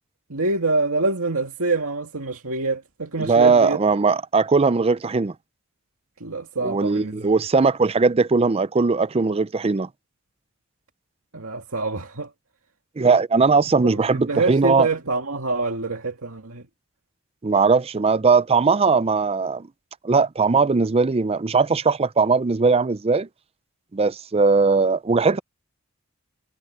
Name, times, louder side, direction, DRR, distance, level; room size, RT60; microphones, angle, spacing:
voice 1, 0.3-3.8 6.2-7.3 11.3-12.3 13.9-16.6, right 3 dB, 80° right, 2.2 m, -26 dB
voice 2, 3.2-5.3 6.6-9.9 13.0-14.9 17.4-19.7 20.0-23.3 23.9-25.4, right 4 dB, 30° right, 0.5 m, -19 dB
head